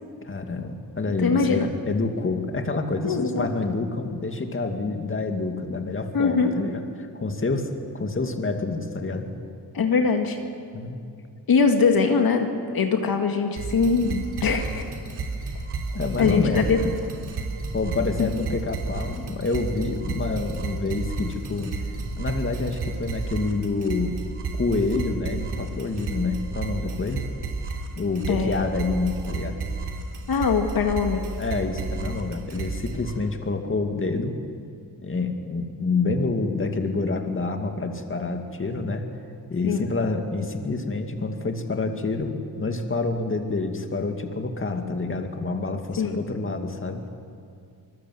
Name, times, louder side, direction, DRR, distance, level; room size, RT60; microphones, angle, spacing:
voice 1, 0.2-9.3 10.7-11.0 15.9-17.0 17.7-21.8 22.2-24.2 24.5-27.2 28.0-29.6 31.4-34.3 35.0-39.1 39.5-47.1, left 3 dB, 30° left, 4 dB, 2.3 m, -27 dB
voice 2, 1.2-1.7 3.0-3.5 6.1-6.5 9.7-10.4 11.5-12.5 12.7-14.8 16.2-16.8 18.2-18.3 28.3-28.6 30.3-31.2 39.6-39.9 46.0-46.2, left 5 dB, 65° left, 4 dB, 2.1 m, -22 dB
sound 1, 13.6-33.1, right 3 dB, 85° right, 3.3 m, -32 dB
26.0 x 20.0 x 7.9 m, 2.3 s
cardioid pair, 85°, 39 cm